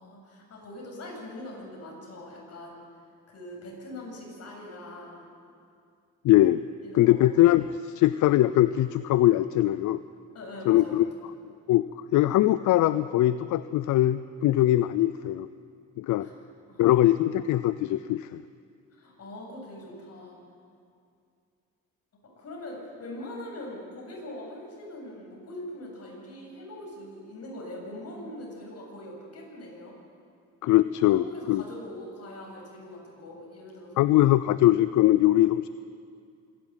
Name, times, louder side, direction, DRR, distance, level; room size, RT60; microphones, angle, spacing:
voice 1, 0.0-2.8 3.3-5.3 6.8-7.3 10.3-11.0 16.2-16.3 16.7-17.0 18.9-20.4 22.4-29.9 31.1-34.1, left 1 dB, 55° left, -1 dB, 7.9 m, -42 dB
voice 2, 6.2-6.6 6.9-10.0 10.7-11.1 11.7-11.8 12.1-15.5 16.0-16.3 16.8-18.4 30.6-31.6 34.0-35.7, left 14 dB, 75° left, 14 dB, 0.6 m, -21 dB
26.0 x 11.5 x 9.8 m, 2.4 s
cardioid pair, 90°, 30 cm